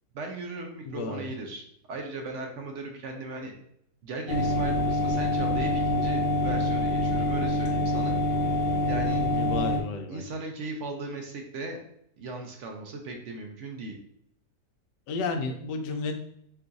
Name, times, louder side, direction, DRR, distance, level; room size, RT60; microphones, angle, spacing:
voice 1, 0.1-3.5 4.0-8.2 8.8-9.2 10.1-11.8 12.2-14.0, right 2 dB, 60° right, 2 dB, 0.8 m, -37 dB
voice 2, 0.9-1.3 9.2-10.2 15.1-16.2, left 3 dB, 85° left, 5 dB, 1.3 m, -32 dB
sound 1, 4.3-9.8, left 1 dB, 50° left, 0.8 m, -26 dB
4.6 x 2.4 x 3.9 m, 0.72 s
omnidirectional pair, 1.8 m